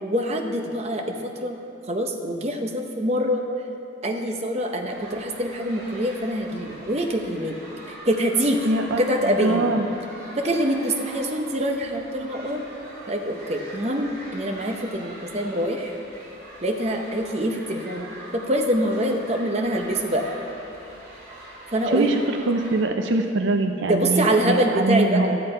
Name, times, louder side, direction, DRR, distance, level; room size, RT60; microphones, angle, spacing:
voice 1, 0.0-1.5 1.9-3.5 4.0-7.6 7.9-8.7 9.0-9.7 10.4-12.6 13.1-15.9 16.6-20.3 21.7-22.1 23.8-25.4, equal, 35° right, 3 dB, 0.7 m, -25 dB
sound 1, 4.9-22.8, right 1 dB, 50° right, 2.3 m, -42 dB
voice 2, 8.6-9.9 21.9-25.4, right 2 dB, 70° right, 5 dB, 0.5 m, -23 dB
12.5 x 7.7 x 4.4 m, 2.6 s
head